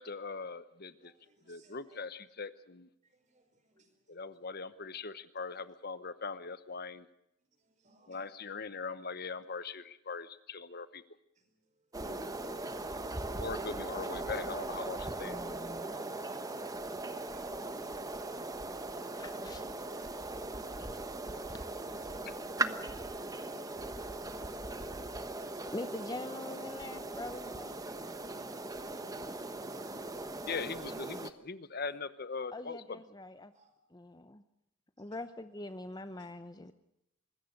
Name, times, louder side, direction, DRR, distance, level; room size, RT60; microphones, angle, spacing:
voice 1, 0.0-1.1 1.5-2.9 4.1-7.1 8.1-11.0 13.4-15.4 30.4-33.0, left 4 dB, 50° left, 13 dB, 1.0 m, -41 dB
voice 2, 1.0-2.0 3.0-4.0 7.6-8.4 11.4-11.6 12.0-13.6 33.5-33.7 35.0-35.1 36.2-36.3, right 1 dB, 35° right, 7 dB, 5.1 m, -61 dB
sound 1, 11.9-31.3, right 2 dB, 15° right, 1.1 m, -39 dB
voice 3, 15.2-16.0 17.8-17.9 19.2-19.6 20.6-21.0 21.9-22.0 25.7-27.8 32.5-33.5 33.9-34.4 35.0-36.7, left 2 dB, 20° left, 10 dB, 0.8 m, -44 dB
25.0 x 21.0 x 6.7 m, 0.82 s
head